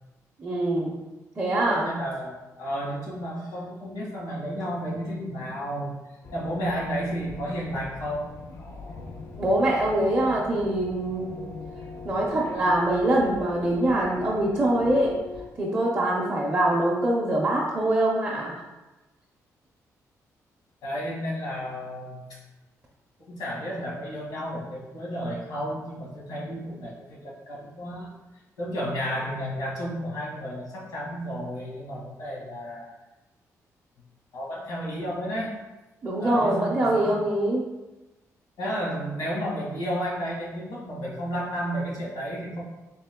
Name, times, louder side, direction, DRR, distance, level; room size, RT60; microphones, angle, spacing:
voice 1, 0.4-1.0 1.4-1.9 9.4-11.3 12.0-15.2 15.6-18.6 36.0-37.6, right 1 dB, 20° right, -5 dB, 0.5 m, -24 dB
voice 2, 1.6-6.0 6.3-9.1 20.8-22.4 23.2-28.1 28.6-32.9 34.3-35.5 36.1-37.2 38.6-42.6, equal, 85° left, -5 dB, 1.4 m, -32 dB
sound 1, 6.2-15.5, left 4 dB, 45° left, 0.4 m, -41 dB
3.6 x 2.7 x 3.5 m, 1.1 s
wide cardioid pair, 175°, 6 cm